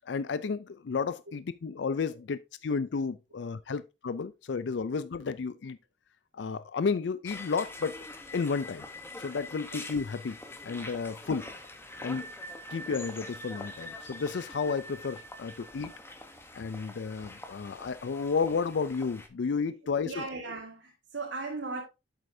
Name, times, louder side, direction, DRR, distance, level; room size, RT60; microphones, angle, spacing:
voice 1, 0.0-5.8 6.3-7.9 8.3-8.8 9.2-10.4 10.6-11.5 12.0-12.3 12.7-15.9 16.5-20.2, left 5 dB, 70° left, 0.4 m, -32 dB
sound 1, 7.2-19.3, left 2 dB, 15° left, 1.0 m, -44 dB
voice 2, 20.0-21.8, right 3 dB, 75° right, 1.6 m, -37 dB
8.1 x 7.6 x 2.7 m
head